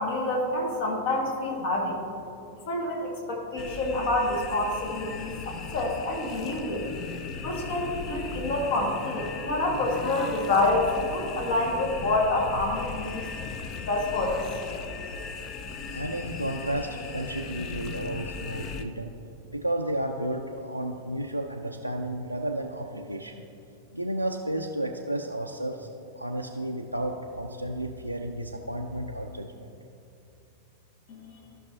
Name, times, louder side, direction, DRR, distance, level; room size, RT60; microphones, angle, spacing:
voice 1, 0.0-2.0 2.7-6.9 7.4-13.5 13.8-14.4 31.1-31.2, left 2 dB, 50° left, -1 dB, 1.8 m, -27 dB
sound 1, 3.6-18.8, left 5 dB, 35° left, 0.6 m, -38 dB
voice 2, 15.9-19.1 19.5-23.4 23.9-25.9 26.1-29.5, right 1 dB, 90° right, 1 dB, 0.4 m, -32 dB
14.0 x 5.9 x 2.7 m, 2.8 s
figure-of-eight pair, 90°, 0 cm